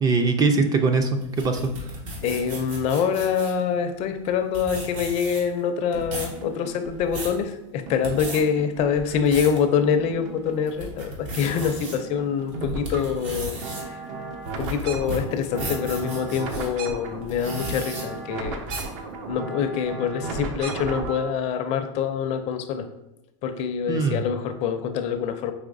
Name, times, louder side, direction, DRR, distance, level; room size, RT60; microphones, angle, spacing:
voice 1, 0.0-2.0 23.9-24.2, right 4 dB, 25° right, 6 dB, 0.3 m, -22 dB
sound 1, 1.2-3.6 4.3-4.4 4.5-5.6 5.9-6.4 6.8-7.4 7.9-8.4 8.9-9.6 10.1-10.2 10.7-12.0 12.5-16.7 17.2-18.0 18.7-19.0, right 1 dB, 80° right, 1.2 m, -35 dB
voice 2, 2.2-14.0 14.6-18.6 19.3-22.9 23.4-25.5, left 7 dB, 45° left, 8 dB, 0.4 m, -25 dB
sound 2, 5.9-7.4 7.9-9.4 9.8-11.1 11.3-21.3, right 3 dB, 65° right, 0.6 m, -36 dB
4.8 x 3.0 x 2.5 m, 0.88 s
supercardioid pair, 120°, 16 cm